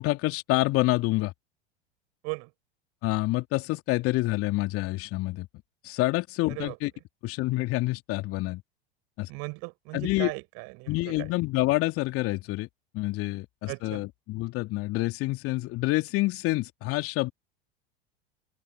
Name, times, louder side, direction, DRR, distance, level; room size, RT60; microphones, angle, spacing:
voice 1, 0.0-1.3 3.0-5.5 5.8-6.9 7.2-8.6 9.2-9.3 9.9-10.3 10.9-12.7 12.9-17.3, left 20 dB, 45° left, 3.1 m, -27 dB
voice 2, 9.3-11.3 13.7-14.1, right 31 dB, 50° right, 5.8 m, -37 dB
open air
figure-of-eight pair, 80°, 31 cm